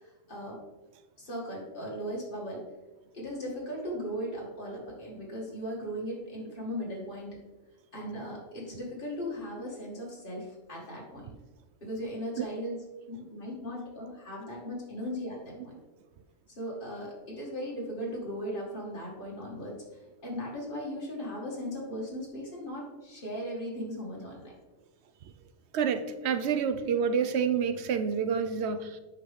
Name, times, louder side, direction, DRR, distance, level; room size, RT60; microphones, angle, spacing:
voice 1, 0.0-0.6 1.2-2.6 3.1-7.4 7.9-11.3 11.8-15.7 16.6-19.8 20.2-24.5, equal, 45° left, -4 dB, 2.1 m, -37 dB
voice 2, 25.7-29.0, right 6 dB, 65° right, 10 dB, 0.8 m, -28 dB
8.1 x 5.3 x 3.6 m, 1.1 s
omnidirectional pair, 1.3 m